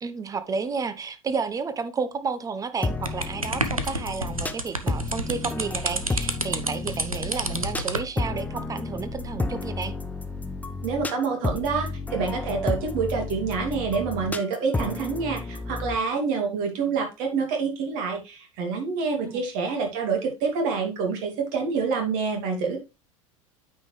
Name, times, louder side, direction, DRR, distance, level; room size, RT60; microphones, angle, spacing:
voice 1, 0.0-9.9 19.2-19.4, right 5 dB, 20° right, 0.9 m, -31 dB
sound 1, 2.8-16.0, left 3 dB, 10° left, 0.7 m, -31 dB
sound 2, 3.1-8.1, right 2 dB, 90° right, 0.8 m, -30 dB
voice 2, 10.8-22.8, right 5 dB, 50° right, 2.6 m, -27 dB
9.1 x 5.5 x 3.2 m
figure-of-eight pair, 75°, 17 cm